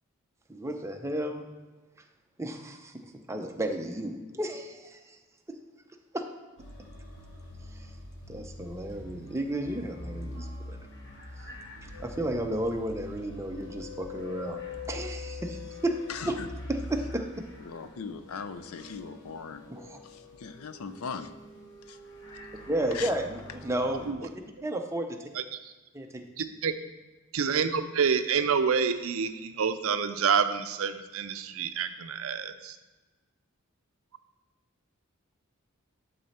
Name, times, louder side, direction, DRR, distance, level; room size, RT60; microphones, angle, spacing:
voice 1, 0.5-1.5 2.4-5.2 5.5-5.6 6.1-6.2 7.7-8.0 8.3-10.8 11.4-11.5 11.8-14.6 14.9-16.0 16.3-16.4 16.7-17.5 19.7-20.0 22.7-24.3 24.6-25.2 25.9-26.2, right 1 dB, 15° right, 4 dB, 0.6 m, -33 dB
sound 1, 6.6-24.1, left 2 dB, 55° left, 1.4 m, -44 dB
voice 2, 16.1-16.5 17.7-19.7 20.0-21.3 21.9-22.0 22.9-23.1, left 5 dB, 80° left, 10 dB, 0.5 m, -39 dB
voice 3, 26.4-26.7 27.3-32.8, right 6 dB, 65° right, 10 dB, 0.5 m, -28 dB
11.0 x 4.1 x 4.3 m, 1.2 s
head